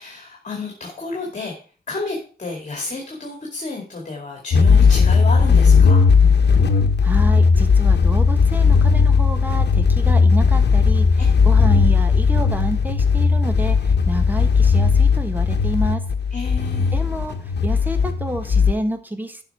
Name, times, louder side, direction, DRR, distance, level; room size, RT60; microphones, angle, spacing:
voice 1, 0.0-1.5 1.9-6.0 16.3-16.9, left 3 dB, 45° left, 0 dB, 2.3 m, -30 dB
sound 1, 4.5-18.7, left 5 dB, 70° left, 1.1 m, -16 dB
voice 2, 7.0-16.0 16.9-19.4, right 1 dB, 10° right, 8 dB, 1.1 m, -29 dB
11.5 x 5.7 x 4.7 m, 0.39 s
wide cardioid pair, 155°, 18 cm